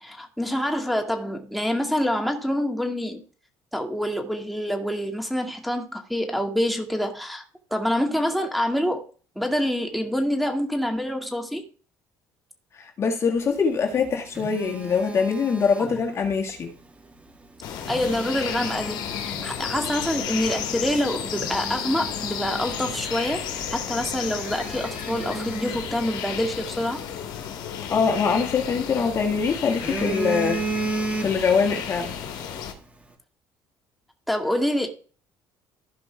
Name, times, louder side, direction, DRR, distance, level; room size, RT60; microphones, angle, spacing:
voice 1, 0.0-3.2 3.7-7.4 7.7-9.0 9.4-11.6 17.9-19.0 19.4-23.4 23.7-27.0 34.3-34.9, equal, ahead, 2.2 m, -26 dB
voice 2, 12.7-16.7 27.9-30.6 31.2-32.2, left 5 dB, 35° left, 1.9 m, -23 dB
Telephone, 13.8-16.4 17.6-19.5 20.1-20.3 20.9-21.0 21.3-23.4 23.6-23.8 24.3-26.6 28.2-29.2 29.5-31.7 32.0-32.2, right 3 dB, 20° right, 3.2 m, -34 dB
sound 1, 17.6-32.7, left 8 dB, 65° left, 2.5 m, -33 dB
15.5 x 5.3 x 3.5 m
cardioid pair, 120°, 8 cm